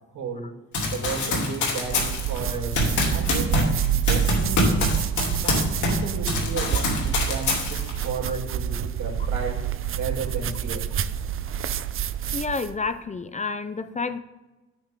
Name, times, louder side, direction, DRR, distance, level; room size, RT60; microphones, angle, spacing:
voice 1, 0.1-0.5 0.8-2.8 3.1-3.8 4.0-4.8 5.3-9.6 9.9-10.9, right 5 dB, 85° right, 0 dB, 3.0 m, -33 dB
Run, 0.7-6.0 6.3-8.0, left 2 dB, 75° left, 2.9 m, -25 dB
sound 1, 1.8-12.8, right 9 dB, 45° right, 0.6 m, -28 dB
voice 2, 12.3-14.2, left 4 dB, 25° left, 12 dB, 0.6 m, -30 dB
9.4 x 9.0 x 3.7 m, 1.1 s
cardioid pair, 90°, 30 cm